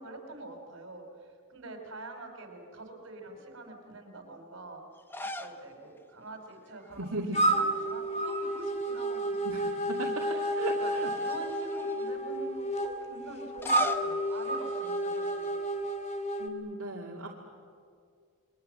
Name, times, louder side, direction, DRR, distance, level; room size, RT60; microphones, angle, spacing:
voice 1, 0.0-4.8 5.2-9.5 10.2-15.6, right 2 dB, 60° right, 4 dB, 5.2 m, -45 dB
sound 1, 5.0-5.6 6.0-6.1 7.4-7.9 8.2-9.4 9.9-10.0 10.9-12.1 13.4-15.6, left 1 dB, 10° left, 0.9 m, -42 dB
voice 2, 7.0-7.5 9.4-10.2 10.6-11.1 16.4-17.3, right 2 dB, 75° right, -2 dB, 2.5 m, -37 dB
sound 2, 7.3-16.5, right 1 dB, 30° left, 2.0 m, -31 dB
29.0 x 23.5 x 7.9 m, 2.2 s
head